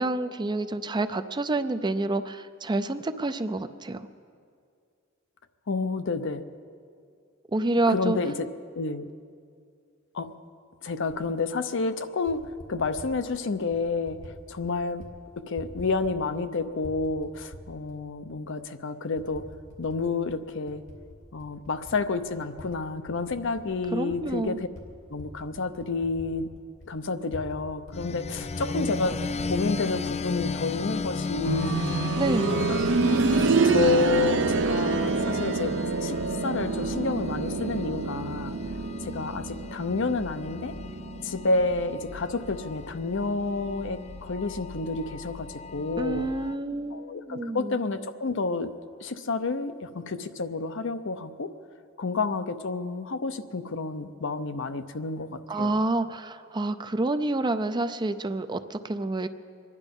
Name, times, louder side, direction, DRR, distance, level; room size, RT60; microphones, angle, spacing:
voice 1, 0.0-4.0 7.5-8.2 23.9-24.6 32.1-32.6 46.0-47.8 55.5-59.3, right 2 dB, 20° right, 10 dB, 0.5 m, -28 dB
voice 2, 5.7-6.4 7.9-8.5 8.8-9.1 10.1-10.3 10.8-15.1 15.4-19.4 19.8-20.8 21.3-24.7 25.1-26.5 26.9-29.2 29.4-31.8 32.5-32.8 33.1-35.7 36.0-36.2 36.4-38.5 39.0-40.7 41.2-46.3 46.9-48.7 49.0-51.5 52.0-55.8, left 3 dB, 65° left, 10 dB, 0.7 m, -30 dB
Typing, 11.1-11.2 12.1-13.1 13.7-14.3 14.6-15.1 15.4-16.5 16.8-18.0 18.5-18.6 19.2-20.0 20.3-22.7 23.0-27.6 27.9-28.0 28.2-29.6, left 1 dB, 90° left, 2.6 m, -45 dB
sound 1, 27.9-46.6, left 4 dB, 30° left, 0.4 m, -36 dB
sound 2, 31.5-42.2 42.5-42.6 43.5-43.6, right 4 dB, 65° right, 0.7 m, -27 dB
24.0 x 11.0 x 5.3 m, 2.3 s
head